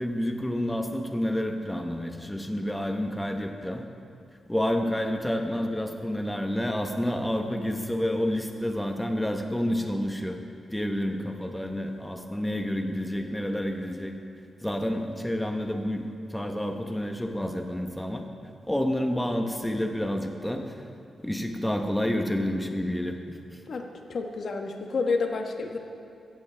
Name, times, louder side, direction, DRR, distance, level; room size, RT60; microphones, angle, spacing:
voice 1, 0.0-3.8 4.5-10.4 10.7-14.1 14.6-18.2 18.7-20.7 21.2-23.4, left 1 dB, 5° left, 4 dB, 1.0 m, -29 dB
voice 2, 23.7-25.8, left 4 dB, 55° left, 3 dB, 1.2 m, -30 dB
16.5 x 15.0 x 3.4 m, 2.5 s
wide cardioid pair, 165°, 0 cm